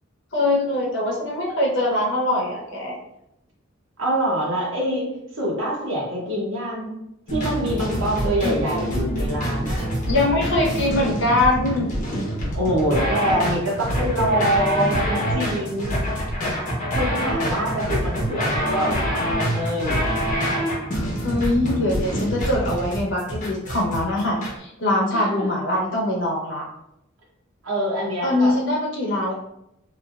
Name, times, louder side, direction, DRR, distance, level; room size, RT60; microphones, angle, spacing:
voice 1, 0.3-3.0 8.4-8.5 10.1-11.9 21.2-26.6 28.2-29.3, left 1 dB, 65° left, -3 dB, 1.0 m, -22 dB
voice 2, 4.0-5.0 5.3-6.9 7.3-9.9 12.5-16.1 16.9-20.1 25.1-25.5 27.6-28.5, right 1 dB, 80° right, -5 dB, 1.1 m, -25 dB
sound 1, 7.3-24.5, equal, 40° left, 1.0 m, -25 dB
3.2 x 2.7 x 2.4 m, 0.81 s
head